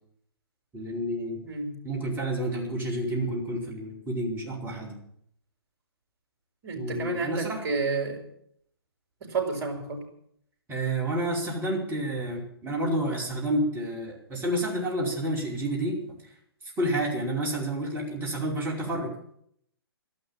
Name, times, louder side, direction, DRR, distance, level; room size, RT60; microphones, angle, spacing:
voice 1, 0.7-1.4 1.8-5.0 6.8-7.6 10.7-16.0 16.8-19.1, right 1 dB, 15° right, -3 dB, 5.1 m, -29 dB
voice 2, 1.4-1.8 6.6-8.2 9.2-10.0, right 4 dB, 45° right, 3 dB, 5.9 m, -30 dB
13.0 x 12.0 x 9.0 m, 0.67 s
figure-of-eight pair, 125°, 13 cm